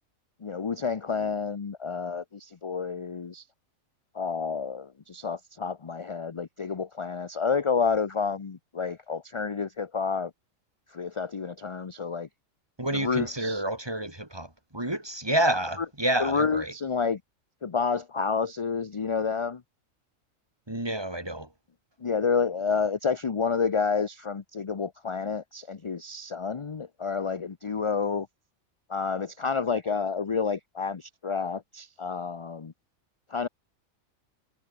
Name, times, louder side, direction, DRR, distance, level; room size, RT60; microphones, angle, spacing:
voice 1, 0.4-3.5 4.1-10.3 10.9-12.3 12.9-13.6 15.8-15.9 16.2-17.2 17.6-19.6 22.0-28.3 28.9-32.7 33.3-33.5, left 5 dB, 35° left, 0.5 m, -29 dB
voice 2, 12.8-16.7 20.7-21.5, right 1 dB, 20° right, 2.7 m, -29 dB
omnidirectional pair, 1.4 m